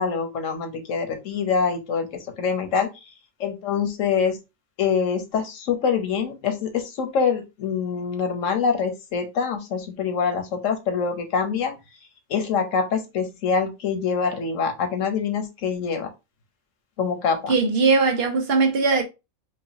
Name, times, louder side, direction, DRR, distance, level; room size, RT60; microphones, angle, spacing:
voice 1, 0.0-3.0 3.4-4.4 4.8-11.7 12.3-16.1 17.0-17.5, left 6 dB, 85° left, 1.2 m, -25 dB
voice 2, 17.5-19.0, right 4 dB, 55° right, 0.9 m, -20 dB
4.7 x 2.5 x 2.8 m
omnidirectional pair, 1.3 m